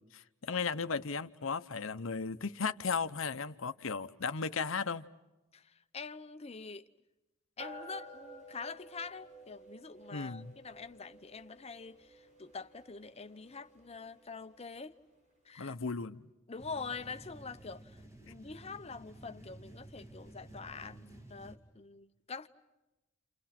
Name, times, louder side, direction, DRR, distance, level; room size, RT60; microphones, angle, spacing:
voice 1, 0.1-5.1 10.1-10.5 15.6-16.2, left 5 dB, 90° left, 0.9 m, -35 dB
voice 2, 5.5-6.9 7.6-14.9 15.4-15.8 16.5-22.5, left 4 dB, 30° left, 0.9 m, -45 dB
sound 1, 7.6-15.3, right 1 dB, 40° right, 6.7 m, -53 dB
sound 2, 16.6-21.6, right 1 dB, 15° right, 2.5 m, -53 dB
30.0 x 29.0 x 6.0 m
head